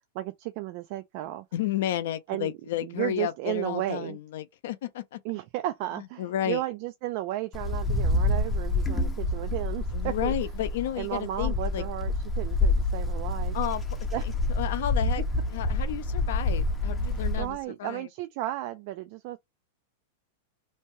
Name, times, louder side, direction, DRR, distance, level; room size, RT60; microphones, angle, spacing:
voice 1, 0.1-1.5 2.3-2.5 2.8-4.2 5.2-10.3 11.0-13.6 14.1-14.3 17.1-19.4, right 15 dB, 45° right, 0.3 m, -34 dB
voice 2, 1.5-5.2 6.2-6.6 9.9-11.8 13.5-13.8 14.6-15.2 15.5-18.1, left 12 dB, 65° left, 0.6 m, -32 dB
Wind, 7.5-17.5, left 2 dB, 15° left, 0.6 m, -28 dB
2.7 x 2.2 x 3.0 m
supercardioid pair, 155°, 0 cm